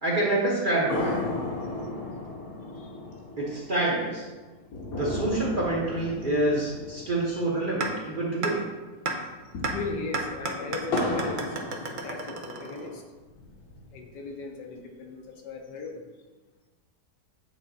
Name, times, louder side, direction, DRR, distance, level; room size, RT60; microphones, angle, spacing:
voice 1, 0.0-1.2 3.4-4.3 5.0-8.6, right 2 dB, 35° right, -4 dB, 0.9 m, -27 dB
sound 1, 0.9-8.5 8.7-8.8 9.3-12.7 13.2-14.2, left 2 dB, 60° left, 1.3 m, -35 dB
sound 2, 7.8-7.9 8.4-8.5 9.1-9.2 9.6-9.7 10.1-13.1, right 3 dB, 65° right, 0.5 m, -31 dB
voice 2, 9.7-13.0 13.9-16.0, left 4 dB, 75° left, 2 dB, 1.5 m, -38 dB
8.9 x 3.5 x 4.1 m, 1.3 s
omnidirectional pair, 1.9 m